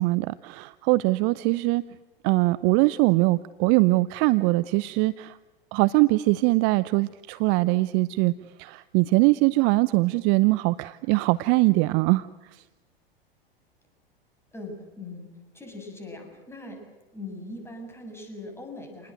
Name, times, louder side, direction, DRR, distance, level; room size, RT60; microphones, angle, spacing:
voice 1, 0.0-1.8 2.2-5.4 5.7-8.3 8.6-12.3, right 22 dB, 40° right, 16 dB, 0.8 m, -22 dB
voice 2, 14.5-15.3 15.5-16.8 17.1-19.1, left 2 dB, 10° left, 3 dB, 7.3 m, -40 dB
29.0 x 20.0 x 7.8 m, 1.1 s
figure-of-eight pair, 95°, 30 cm